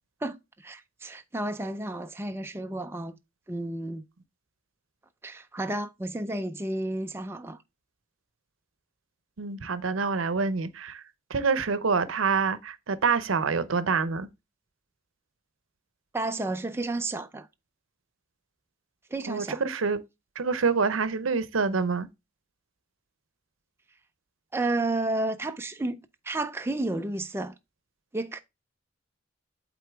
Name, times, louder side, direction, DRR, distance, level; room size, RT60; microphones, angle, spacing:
voice 1, 0.2-3.2 3.5-4.0 5.2-7.6 16.1-17.5 19.1-19.6 24.5-27.5 28.1-28.4, right 2 dB, 10° right, 0.4 m, -31 dB
voice 2, 9.4-11.0 11.3-14.3 19.3-20.0 20.4-22.1, right 5 dB, 75° right, 0.7 m, -26 dB
8.2 x 3.8 x 3.5 m
head